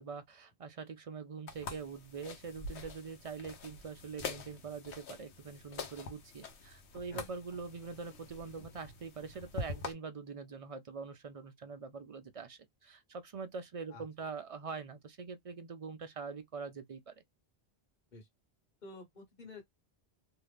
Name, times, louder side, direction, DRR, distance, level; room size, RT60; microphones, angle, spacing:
voice 1, 0.0-17.2, right 5 dB, 55° right, 0.4 m, -44 dB
sound 1, 1.5-9.9, left 4 dB, 80° left, 1.0 m, -45 dB
voice 2, 18.8-19.6, left 2 dB, 45° left, 1.2 m, -50 dB
2.9 x 2.3 x 3.3 m
omnidirectional pair, 1.1 m